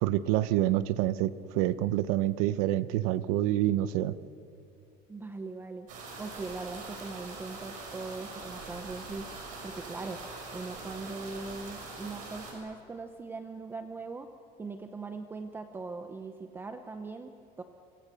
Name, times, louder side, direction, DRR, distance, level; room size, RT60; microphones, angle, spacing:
voice 1, 0.0-4.1, right 14 dB, 70° right, 14 dB, 1.0 m, -27 dB
voice 2, 5.1-9.3 9.6-10.2 10.5-14.3 14.6-17.6, right 3 dB, 10° right, 7 dB, 0.7 m, -40 dB
sound 1, 5.9-12.5, right 3 dB, 40° right, 6.8 m, -43 dB
28.5 x 25.0 x 6.9 m, 2.5 s
cardioid pair, 170°, 20 cm